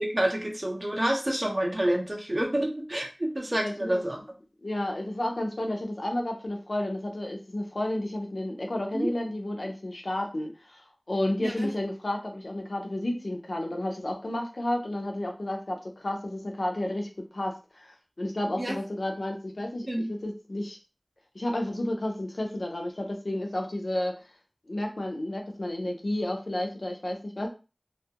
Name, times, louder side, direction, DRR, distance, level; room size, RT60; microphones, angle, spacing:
voice 1, 0.0-4.2 8.9-9.1 11.4-11.7 18.6-18.7 19.9-20.1, right 1 dB, 35° right, 0 dB, 0.8 m, -28 dB
voice 2, 3.6-3.9 4.6-20.8 21.3-24.1 24.7-27.5, left 1 dB, 80° left, 2 dB, 0.5 m, -31 dB
2.3 x 2.1 x 2.8 m, 0.32 s
wide cardioid pair, 45°, 0 cm